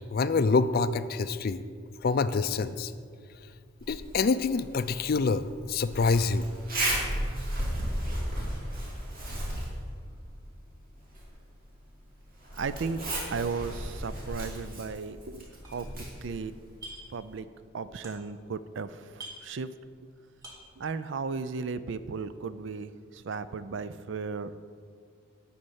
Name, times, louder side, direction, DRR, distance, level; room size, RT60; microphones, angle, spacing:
voice 1, 0.1-1.6 2.0-2.9 3.9-5.4 5.7-6.5, left 4 dB, 45° left, 12 dB, 0.4 m, -26 dB
Zipper (clothing), 3.8-17.4, right 1 dB, 45° right, 2.7 m, -36 dB
voice 2, 12.6-13.0 13.3-16.5 17.1-17.5 17.7-19.1 19.4-19.7 20.8-24.5, right 5 dB, 60° right, 13 dB, 0.4 m, -35 dB
sound 1, 15.6-16.3 16.6-17.2 17.5-18.5 18.8-18.9 19.1-20.1 20.3-20.8, right 1 dB, 20° right, 2.0 m, -47 dB
12.0 x 4.3 x 8.0 m, 2.1 s
head